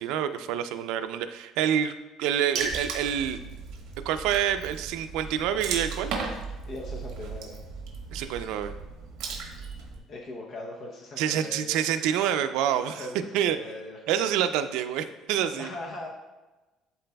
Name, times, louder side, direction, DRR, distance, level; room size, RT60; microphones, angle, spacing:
voice 1, 0.0-3.4 4.0-6.1 8.1-8.7 11.2-13.0 13.3-13.6 14.1-15.7, right 9 dB, 85° right, 9 dB, 0.4 m, -27 dB
Water / Splash splatter, 2.6-10.0, right 5 dB, 65° right, 1.1 m, -36 dB
voice 2, 6.7-7.6 10.1-11.8 12.9-14.0 15.6-16.1, left 2 dB, 40° left, -1 dB, 0.7 m, -40 dB
11.5 x 4.1 x 2.3 m, 1.1 s
cardioid pair, 170°, 0 cm